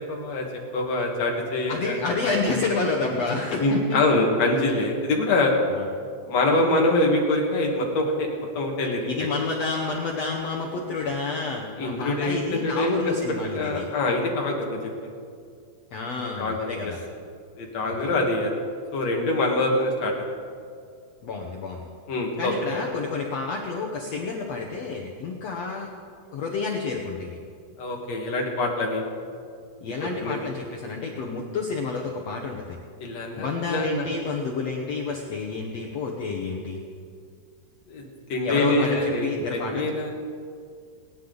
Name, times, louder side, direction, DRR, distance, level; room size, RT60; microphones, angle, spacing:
voice 1, 0.1-0.5 0.7-1.9 2.5-2.6 3.0-3.2 3.6-5.5 6.3-8.3 8.6-9.1 11.8-13.2 13.5-15.1 16.4-16.7 17.6-18.5 18.9-20.1 22.1-22.9 27.8-29.0 30.2-30.4 33.0-34.1 37.9-40.1, left 2 dB, 50° left, 0 dB, 2.5 m, -25 dB
voice 2, 1.7-4.0 5.7-5.9 9.1-13.9 15.9-17.0 17.8-18.1 21.2-21.9 22.4-25.9 26.3-27.4 29.8-32.8 33.4-36.8 38.4-39.9, left 4 dB, 75° left, 0 dB, 1.5 m, -29 dB
28.5 x 10.5 x 4.0 m, 2.2 s
omnidirectional pair, 4.6 m